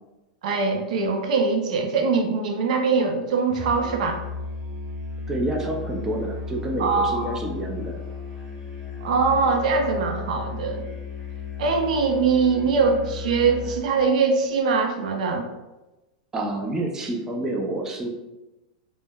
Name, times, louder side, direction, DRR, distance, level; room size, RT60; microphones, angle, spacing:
voice 1, 0.4-4.2 6.8-7.4 9.0-10.8 11.6-15.5, right 4 dB, 70° right, 4 dB, 0.5 m, -22 dB
Musical instrument, 3.5-13.9, left 4 dB, 15° left, 1.5 m, -35 dB
voice 2, 5.3-8.0 16.3-18.1, right 1 dB, 10° right, 0 dB, 0.3 m, -28 dB
3.2 x 2.0 x 2.2 m, 1.0 s
supercardioid pair, 140°, 4 cm